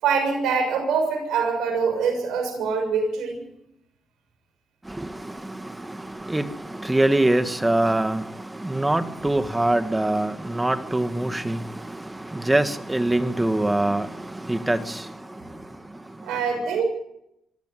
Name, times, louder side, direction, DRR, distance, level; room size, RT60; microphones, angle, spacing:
voice 1, 0.0-3.4 16.3-16.8, right 5 dB, 90° right, 7.0 m, -24 dB
voice 2, 5.0-8.2 8.5-15.1, right 1 dB, 15° right, 1.6 m, -24 dB
26.0 x 13.5 x 9.8 m
cardioid pair, 75°, 0 cm